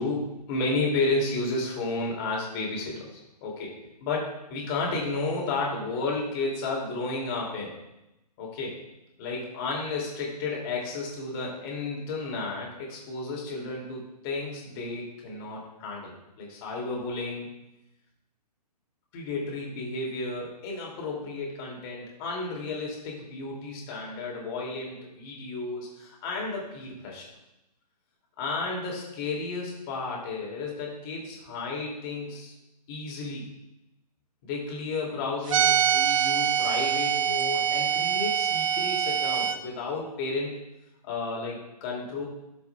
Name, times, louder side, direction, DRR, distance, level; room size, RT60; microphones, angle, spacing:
voice 1, 0.0-3.7 4.0-7.7 8.4-8.7 9.2-17.5 19.1-27.3 28.4-32.5 32.9-33.5 34.4-40.6 41.0-42.3, left 3 dB, 35° left, -2 dB, 2.6 m, -32 dB
sound 1, 35.5-39.6, right 9 dB, 55° right, 0.8 m, -24 dB
14.0 x 7.1 x 2.3 m, 0.92 s
figure-of-eight pair, 130°, 21 cm